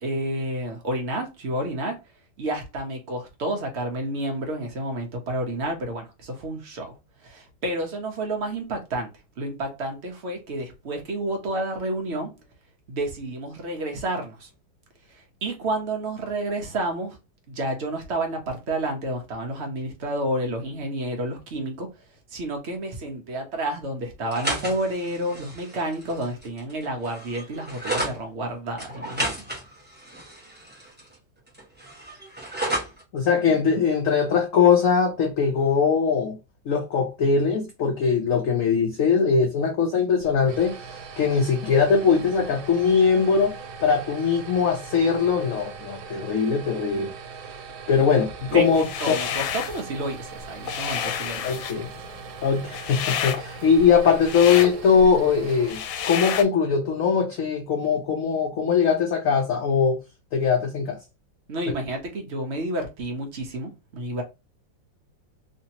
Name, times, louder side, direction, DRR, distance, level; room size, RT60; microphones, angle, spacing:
voice 1, 0.0-2.0 2.4-7.0 7.2-9.1 9.4-12.3 12.9-14.5 15.1-17.2 17.5-21.9 22.3-29.4 48.5-48.6 49.0-51.5 51.8-51.9 61.5-64.2, right 1 dB, 50° right, 0.9 m, -30 dB
sound 1, 24.2-28.2 28.8-31.2 31.5-33.0, right 1 dB, 10° right, 0.7 m, -32 dB
voice 2, 33.1-36.4 36.7-47.1 47.9-49.1 51.4-51.9 52.4-60.0 60.3-61.0, left 6 dB, 70° left, 0.7 m, -21 dB
sound 2, 40.2-56.4, right 5 dB, 85° right, 1.4 m, -40 dB
sound 3, 48.7-49.8 50.2-56.4, left 8 dB, 85° left, 1.3 m, -30 dB
3.3 x 2.9 x 2.8 m
omnidirectional pair, 2.1 m